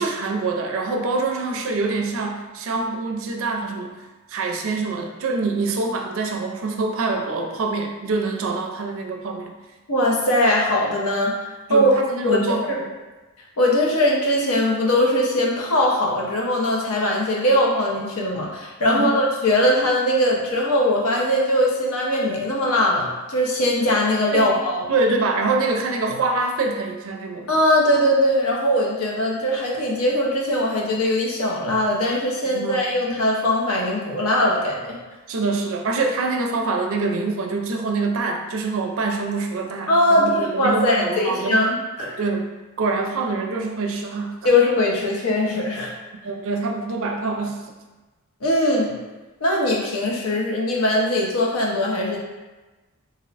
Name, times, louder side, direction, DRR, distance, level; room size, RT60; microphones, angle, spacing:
voice 1, 0.0-9.5 11.7-12.7 18.8-19.2 24.3-24.5 24.9-27.5 32.5-32.8 35.3-41.6 42.2-42.5 42.8-44.5 46.2-47.6, right 3 dB, 65° right, 3 dB, 0.4 m, -25 dB
voice 2, 9.9-11.3 11.7-11.9 12.2-12.8 13.6-24.8 27.5-35.0 39.9-42.2 44.4-45.9 48.4-48.9 49.4-52.2, left 1 dB, 80° left, -2 dB, 0.7 m, -20 dB
2.6 x 2.0 x 4.0 m, 1.2 s
head